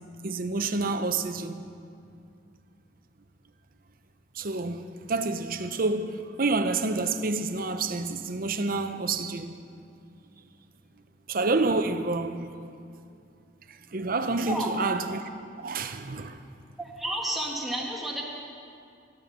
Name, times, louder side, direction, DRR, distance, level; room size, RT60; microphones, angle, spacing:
voice 1, 0.2-1.7 4.3-9.6 11.3-12.6 13.9-15.2 15.6-16.4, right 3 dB, 50° right, 0.7 m, -28 dB
voice 2, 16.8-18.2, right 1 dB, ahead, 2.0 m, -31 dB
14.0 x 12.5 x 6.0 m
head